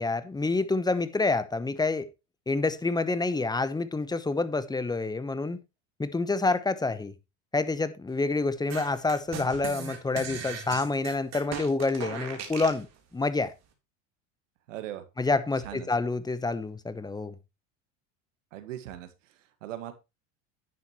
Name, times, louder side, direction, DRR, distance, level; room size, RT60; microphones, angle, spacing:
voice 1, 0.0-2.1 2.5-5.6 6.0-7.1 7.5-12.9 13.1-13.5 15.2-17.4, left 3 dB, 10° left, 1.0 m, -28 dB
sound 1, 8.7-12.8, right 6 dB, 45° right, 3.6 m, -38 dB
voice 2, 14.7-15.0 15.6-15.9 18.5-19.9, right 12 dB, 90° right, 2.0 m, -40 dB
10.5 x 9.3 x 3.2 m
supercardioid pair, 100°, 37 cm